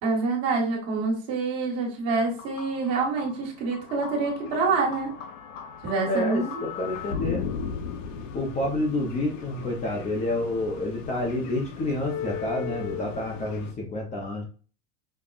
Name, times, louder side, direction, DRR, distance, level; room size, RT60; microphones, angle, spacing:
voice 1, 0.0-5.1 5.8-6.7, right 4 dB, 40° right, -2 dB, 1.6 m, -26 dB
sound 1, 2.1-13.7, left 6 dB, 75° left, 0.9 m, -37 dB
voice 2, 6.0-7.4 8.3-14.4, left 1 dB, 20° left, -2 dB, 0.6 m, -29 dB
5.3 x 2.2 x 2.4 m, 0.37 s
supercardioid pair, 150°, 37 cm